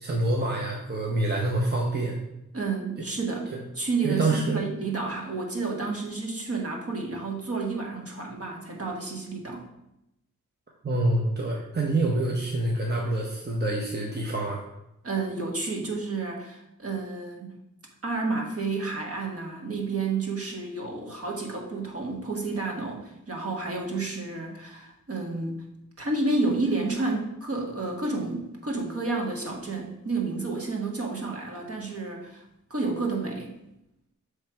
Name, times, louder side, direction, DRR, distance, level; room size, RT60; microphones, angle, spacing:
voice 1, 0.0-2.2 4.0-4.6 10.8-14.6, right 2 dB, 35° right, -1 dB, 0.9 m, -26 dB
voice 2, 2.5-9.7 15.0-17.6 18.0-25.6 26.0-32.4 32.7-33.5, right 3 dB, 50° right, 0 dB, 1.4 m, -30 dB
7.4 x 3.3 x 4.6 m, 0.85 s
wide cardioid pair, 75°, 31 cm